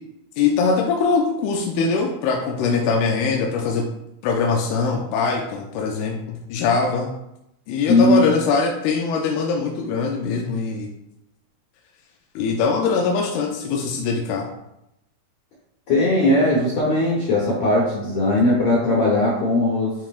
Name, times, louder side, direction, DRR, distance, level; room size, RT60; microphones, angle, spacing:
voice 1, 0.4-3.9 4.2-7.1 7.7-10.9 12.4-14.5, left 4 dB, 90° left, 0 dB, 2.6 m, -22 dB
voice 2, 7.9-8.3 15.9-19.9, left 2 dB, 60° left, -5 dB, 2.0 m, -18 dB
9.3 x 4.3 x 2.5 m, 0.85 s
omnidirectional pair, 4.4 m